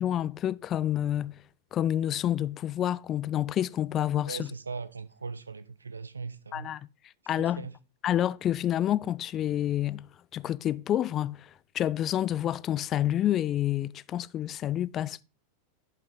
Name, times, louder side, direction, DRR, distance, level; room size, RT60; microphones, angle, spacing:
voice 1, 0.0-1.4 1.7-4.5 6.5-6.8 7.3-7.6 8.0-10.1 10.3-11.5 11.7-15.2, left 11 dB, 30° left, 0.3 m, -28 dB
voice 2, 4.2-6.7 7.3-7.7, right 4 dB, 75° right, 0.6 m, -39 dB
11.0 x 5.5 x 3.7 m
figure-of-eight pair, 90°, 0 cm